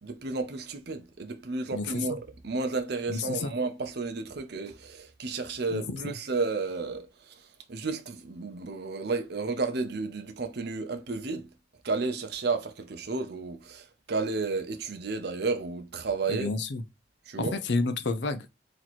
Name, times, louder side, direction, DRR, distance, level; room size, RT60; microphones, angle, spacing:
voice 1, 0.0-11.5 11.8-16.5 17.3-17.6, right 3 dB, 55° right, 0.6 m, -32 dB
voice 2, 3.1-3.5 5.7-6.1 16.3-16.8 17.4-18.5, left 3 dB, 65° left, 0.5 m, -30 dB
3.0 x 2.9 x 4.0 m
head